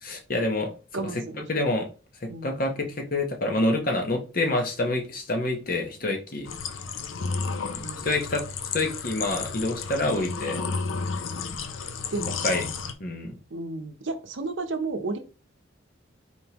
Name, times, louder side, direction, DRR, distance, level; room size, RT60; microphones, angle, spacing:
voice 1, 0.0-1.2 1.5-1.9 2.2-6.5 8.0-8.4 8.7-10.7 12.4-12.6 13.0-13.4, left 2 dB, 45° left, 3 dB, 0.9 m, -27 dB
voice 2, 0.9-1.7 2.3-2.8 7.8-8.1 12.1-12.5 13.5-15.2, right 3 dB, 70° right, 7 dB, 0.7 m, -33 dB
sound 1, 6.4-12.9, left 5 dB, 80° left, 0.5 m, -32 dB
4.4 x 3.5 x 2.9 m, 0.33 s
head